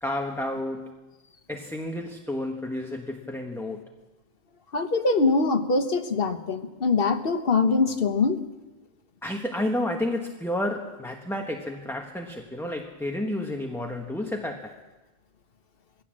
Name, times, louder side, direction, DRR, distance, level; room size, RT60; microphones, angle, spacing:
voice 1, 0.0-0.9 1.5-3.8 9.2-14.8, left 1 dB, ahead, 2 dB, 1.1 m, -31 dB
voice 2, 4.7-8.4, left 4 dB, 45° left, 7 dB, 1.4 m, -23 dB
21.0 x 16.5 x 7.5 m, 1.2 s
omnidirectional pair, 1.4 m